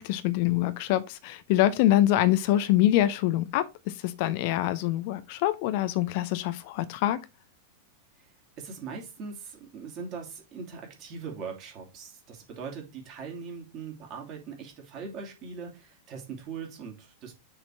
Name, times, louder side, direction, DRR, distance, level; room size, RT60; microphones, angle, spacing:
voice 1, 0.0-7.2, left 14 dB, 50° left, 0.6 m, -25 dB
voice 2, 8.6-17.3, right 5 dB, 40° right, 2.8 m, -40 dB
6.6 x 4.4 x 4.4 m
figure-of-eight pair, 90°, 0 cm